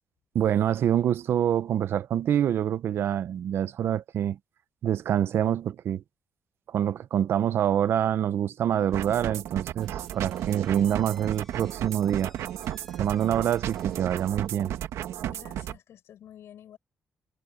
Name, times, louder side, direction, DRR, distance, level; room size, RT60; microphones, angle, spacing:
voice 1, 0.3-4.4 4.8-6.0 6.7-12.3 13.0-14.8, right 10 dB, 60° right, 0.8 m, -26 dB
sound 1, 8.9-15.8, right 11 dB, 90° right, 1.5 m, -34 dB
Slam / Squeak, 9.8-14.8, left 1 dB, 5° left, 4.3 m, -57 dB
voice 2, 15.2-16.8, left 10 dB, 65° left, 7.6 m, -50 dB
cardioid pair, 160°, 5 cm